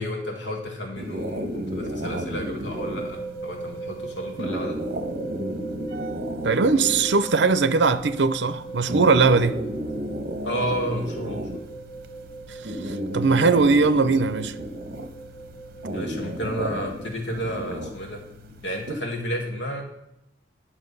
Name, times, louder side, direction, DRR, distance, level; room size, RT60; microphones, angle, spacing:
voice 1, 0.0-4.8 10.4-11.6 15.9-18.2 18.6-19.8, equal, 75° left, 1.8 m, -31 dB
sound 1, 1.0-18.9, equal, 55° right, 0.9 m, -33 dB
sound 2, 2.7-17.1, right 4 dB, 35° left, 4.0 m, -39 dB
voice 2, 6.4-9.6 12.8-14.5, right 4 dB, 75° right, 0.6 m, -20 dB
10.0 x 6.1 x 5.4 m
head